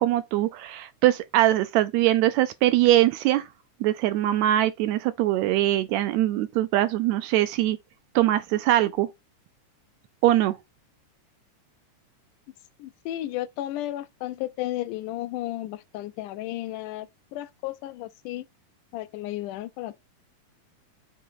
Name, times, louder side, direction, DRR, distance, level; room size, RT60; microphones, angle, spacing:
voice 1, 0.0-3.5 3.8-7.8 8.1-9.1 10.2-10.6, right 14 dB, 80° right, 1.7 m, -22 dB
voice 2, 12.8-17.1 17.3-18.4 18.9-19.9, left 15 dB, 85° left, 2.2 m, -33 dB
7.0 x 3.0 x 5.6 m
omnidirectional pair, 3.5 m